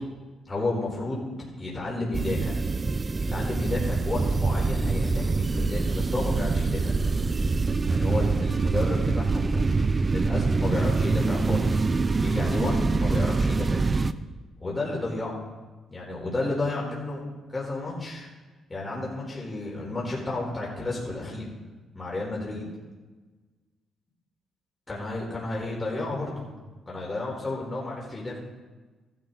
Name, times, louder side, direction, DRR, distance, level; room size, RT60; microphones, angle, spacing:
voice 1, 0.5-1.3 1.6-2.6 3.2-7.1 7.8-9.6 10.1-11.8 12.2-14.0 14.6-15.4 15.9-17.2 17.5-18.3 18.7-21.4 21.9-22.6 24.9-26.5 26.9-28.4, left 2 dB, 20° left, -5 dB, 4.0 m, -32 dB
sound 1, 2.1-14.1, right 3 dB, 30° right, 0.5 m, -25 dB
14.5 x 10.5 x 4.0 m, 1.3 s
cardioid pair, 90°, 0 cm